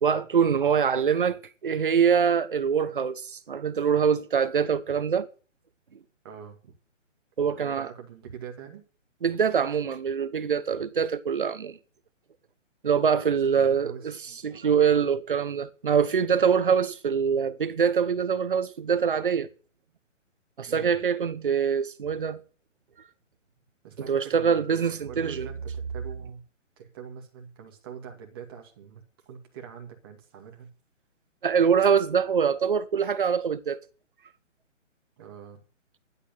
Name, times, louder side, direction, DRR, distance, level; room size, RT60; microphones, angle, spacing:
voice 1, 0.0-5.3 7.4-7.9 9.2-11.8 12.8-19.5 20.6-22.4 24.1-25.5 31.4-33.8, right 7 dB, 40° right, 1.0 m, -24 dB
voice 2, 6.2-6.7 7.4-8.8 13.5-14.4 20.7-20.9 23.8-26.4 26.8-30.7 35.2-35.6, right 7 dB, 20° right, 2.2 m, -44 dB
11.0 x 8.2 x 8.9 m
hypercardioid pair, 175°, 38 cm